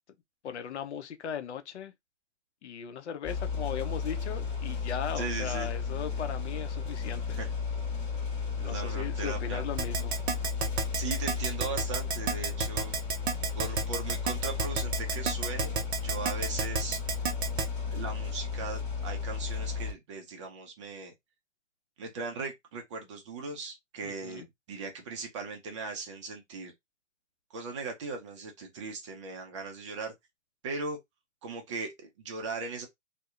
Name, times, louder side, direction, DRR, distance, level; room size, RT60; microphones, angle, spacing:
voice 1, 0.4-1.9 2.6-7.4 8.6-10.1 24.0-24.5, left 8 dB, 65° left, 0.6 m, -38 dB
sound 1, 3.2-19.9, left 5 dB, 15° left, 1.0 m, -34 dB
voice 2, 5.2-5.7 7.4-7.5 8.6-9.6 10.9-12.9 13.5-17.0 17.9-21.1 22.0-26.7 27.5-30.1 30.6-31.0 31.4-32.9, right 4 dB, 25° right, 0.5 m, -38 dB
Keyboard (musical), 9.8-17.7, right 5 dB, 60° right, 0.8 m, -30 dB
2.7 x 2.1 x 2.4 m
hypercardioid pair, 140°, 37 cm